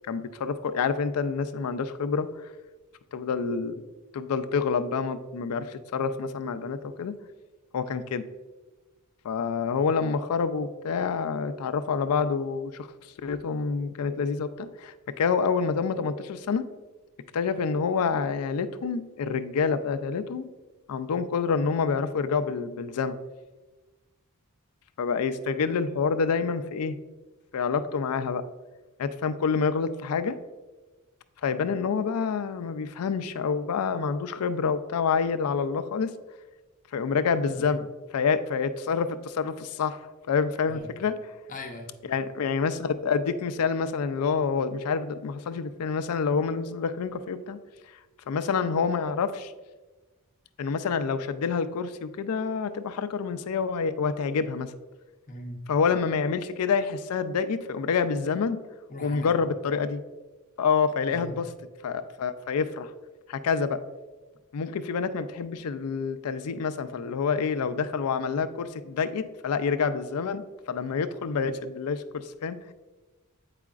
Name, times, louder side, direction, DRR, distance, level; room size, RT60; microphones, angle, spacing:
voice 1, 0.1-2.3 3.1-3.8 4.1-7.1 7.7-8.2 9.2-12.9 13.2-16.6 17.3-20.5 20.9-23.2 25.0-27.0 27.5-28.4 29.0-30.4 31.4-36.1 36.9-37.9 38.1-40.0 40.3-41.1 42.1-47.6 48.3-49.5 50.6-54.7 55.7-58.6 59.0-60.0 60.6-61.5 61.8-62.9 63.3-63.8 64.5-72.6, left 5 dB, 70° left, 11 dB, 0.4 m, -27 dB
voice 2, 41.5-41.9 55.3-55.6 58.9-59.3 61.1-61.4, left 1 dB, 35° left, 2 dB, 0.7 m, -40 dB
8.2 x 4.9 x 2.4 m, 1.2 s
head